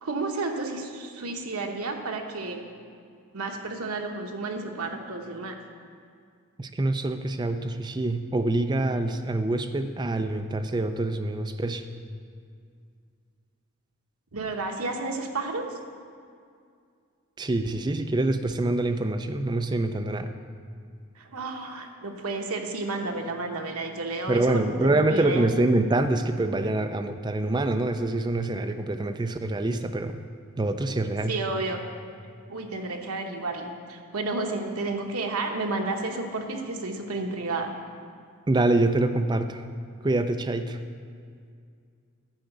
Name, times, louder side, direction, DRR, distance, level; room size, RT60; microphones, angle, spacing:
voice 1, 0.0-2.7 3.3-5.6 14.3-15.8 21.1-25.5 31.3-31.8 32.5-37.7, right 3 dB, 85° right, 3 dB, 1.0 m, -31 dB
voice 2, 6.6-11.8 17.4-20.3 24.3-30.2 30.6-31.3 38.5-39.6 40.0-40.8, right 2 dB, 20° right, 7 dB, 0.4 m, -25 dB
10.5 x 4.7 x 7.9 m, 2.2 s
head